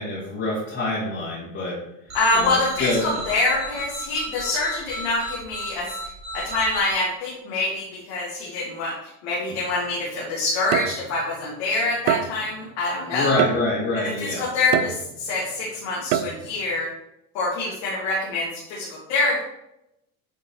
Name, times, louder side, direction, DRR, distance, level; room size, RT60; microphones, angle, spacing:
voice 1, 0.0-1.8 2.3-3.2 13.1-14.5, left 2 dB, 30° left, -8 dB, 2.1 m, -26 dB
voice 2, 2.1-13.5 14.0-16.9 17.3-19.4, left 2 dB, 70° left, -6 dB, 2.0 m, -25 dB
sound 1, 2.1-6.9, right 2 dB, 40° right, 2.3 m, -34 dB
sound 2, 9.5-9.7 10.7-11.3 12.1-12.6 13.4-14.0 14.7-15.4 16.1-16.6, right 10 dB, 70° right, 0.6 m, -26 dB
8.7 x 3.8 x 3.0 m, 0.85 s
supercardioid pair, 95°, 41 cm